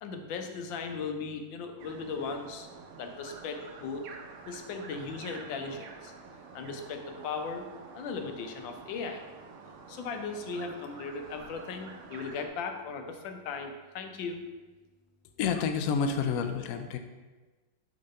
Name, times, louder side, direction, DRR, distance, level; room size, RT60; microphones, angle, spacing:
voice 1, 0.0-2.7 3.0-4.0 4.5-6.1 6.5-7.6 7.9-9.2 9.9-14.4, left 4 dB, 90° left, 5 dB, 1.5 m, -37 dB
sound 1, 1.8-12.5, right 4 dB, 65° right, 0.9 m, -48 dB
voice 2, 15.4-17.0, left 6 dB, 70° left, 7 dB, 0.8 m, -29 dB
6.7 x 3.9 x 5.4 m, 1.3 s
omnidirectional pair, 2.0 m